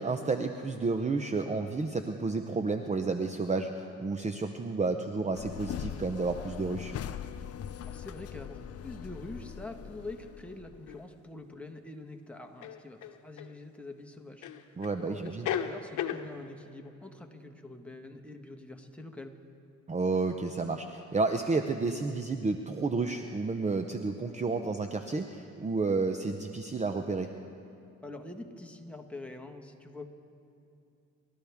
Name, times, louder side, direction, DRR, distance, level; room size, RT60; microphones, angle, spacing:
voice 1, 0.0-6.9 14.8-15.5 19.9-27.3, right 3 dB, 25° right, 6 dB, 0.7 m, -31 dB
sound 1, 5.3-11.0, left 9 dB, 55° left, 0.6 m, -41 dB
voice 2, 7.8-19.3 28.0-30.1, left 2 dB, 5° left, 2 dB, 1.5 m, -45 dB
sound 2, 10.9-11.0 12.6-13.5 14.4-15.0 15.2-16.3, left 9 dB, 80° left, 0.9 m, -34 dB
29.5 x 13.0 x 3.6 m, 2.8 s
cardioid pair, 90°, 30 cm